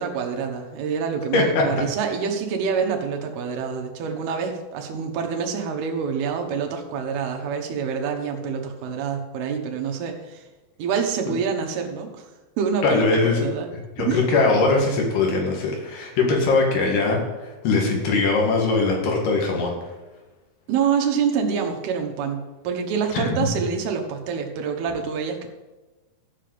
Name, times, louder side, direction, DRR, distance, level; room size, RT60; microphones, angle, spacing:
voice 1, 0.0-10.4 10.8-12.3 12.6-13.7 14.0-14.2 20.7-25.5, right 6 dB, 85° right, 3 dB, 3.1 m, -26 dB
voice 2, 1.3-1.7 12.8-13.5 14.0-19.8 23.1-23.4, left 3 dB, 85° left, 0 dB, 3.9 m, -21 dB
14.0 x 5.1 x 7.8 m, 1.1 s
omnidirectional pair, 4.4 m